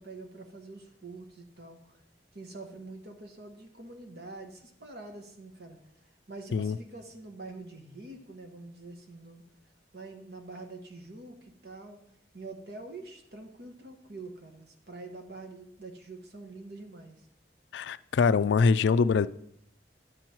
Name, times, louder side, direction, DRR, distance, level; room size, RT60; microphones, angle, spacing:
voice 1, 0.0-2.0 2.3-9.4 9.9-12.0 12.3-17.3, right 2 dB, 60° right, 1.4 m, -45 dB
voice 2, 17.7-19.3, left 5 dB, 80° left, 0.4 m, -23 dB
10.5 x 7.0 x 4.5 m
head